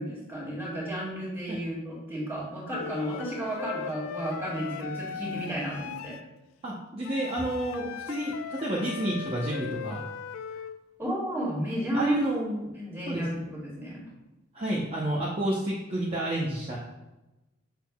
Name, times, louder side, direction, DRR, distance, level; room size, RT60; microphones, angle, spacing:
voice 1, 0.0-6.1 11.0-12.2 12.7-14.0, right 1 dB, 10° right, -5 dB, 2.0 m, -32 dB
Wind instrument woodwind instrument, 2.7-6.2 7.0-10.8, left 7 dB, 90° left, 0.3 m, -39 dB
voice 2, 6.6-10.0 11.9-12.7 13.1-13.2 14.5-16.8, right 1 dB, 30° right, -4 dB, 0.7 m, -30 dB
6.5 x 6.3 x 2.3 m, 1.0 s
head